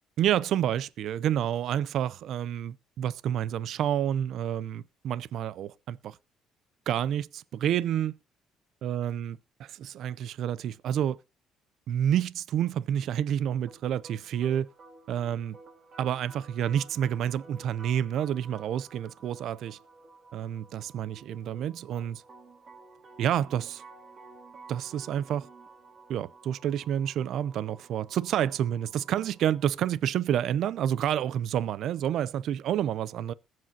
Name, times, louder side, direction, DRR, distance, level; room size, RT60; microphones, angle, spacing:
voice 1, 0.2-6.2 6.9-8.1 8.8-9.3 9.7-11.2 11.9-14.7 15.1-15.6 16.0-19.8 20.3-22.2 23.2-23.8 24.7-25.5 26.1-33.3, right 10 dB, 65° right, 0.5 m, -29 dB
sound 1, 13.7-29.7, right 3 dB, 45° right, 3.6 m, -52 dB
21.0 x 7.6 x 2.8 m
cardioid pair, 115°, 0 cm